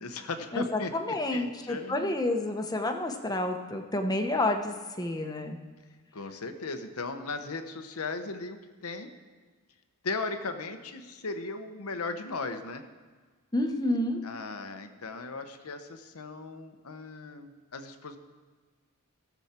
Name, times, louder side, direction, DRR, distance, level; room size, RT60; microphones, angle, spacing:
voice 1, 0.0-2.1 6.1-9.1 10.0-12.8 14.2-18.2, left 3 dB, 85° left, 8 dB, 1.0 m, -37 dB
voice 2, 0.9-5.6 13.5-14.2, left 1 dB, 15° left, 5 dB, 0.8 m, -29 dB
17.5 x 7.2 x 4.4 m, 1.5 s
head